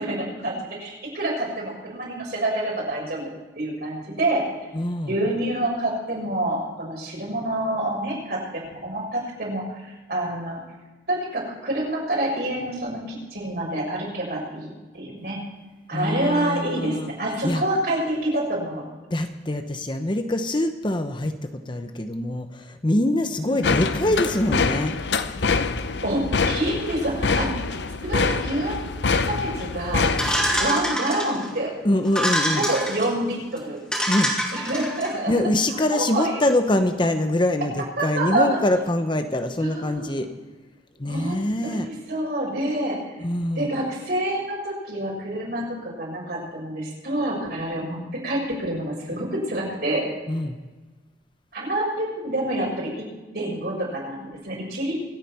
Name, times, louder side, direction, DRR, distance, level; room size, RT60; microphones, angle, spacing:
voice 1, 0.0-3.3 3.6-4.5 5.1-10.6 11.1-15.4 15.9-18.8 23.5-24.0 26.0-27.5 28.1-28.8 29.3-30.1 30.6-31.7 32.5-33.8 34.5-35.5 35.9-36.6 38.0-38.6 39.6-40.2 41.1-43.2 43.6-50.1 51.5-53.0 53.3-55.0, right 1 dB, 60° right, -3 dB, 6.4 m, -27 dB
voice 2, 4.7-5.2 15.9-17.1 17.4-17.6 19.1-24.9 31.8-32.6 34.1-34.3 35.3-40.3 41.0-41.9 43.2-43.8 50.3-50.6, left 1 dB, 25° left, 7 dB, 0.9 m, -24 dB
sound 1, 23.6-30.7, left 4 dB, 75° left, 0.7 m, -25 dB
sound 2, 30.2-31.5 32.0-33.1 33.6-33.7 33.9-35.1, equal, 5° left, 3.3 m, -25 dB
26.0 x 9.1 x 4.5 m, 1.2 s
head